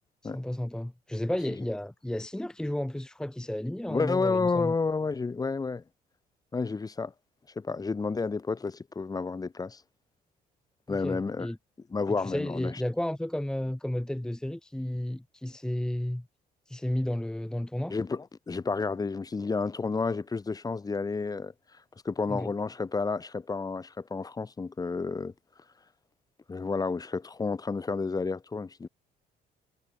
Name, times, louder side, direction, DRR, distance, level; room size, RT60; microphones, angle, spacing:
voice 1, 0.2-4.7 10.9-11.6 12.2-16.2 16.7-17.9 22.3-22.5, left 1 dB, 5° left, 1.2 m, -32 dB
voice 2, 3.9-5.8 6.5-7.1 7.6-9.8 10.9-11.5 11.9-12.8 17.9-21.5 22.1-25.3 26.5-28.9, left 4 dB, 20° left, 1.8 m, -30 dB
cardioid pair, 110°, 17 cm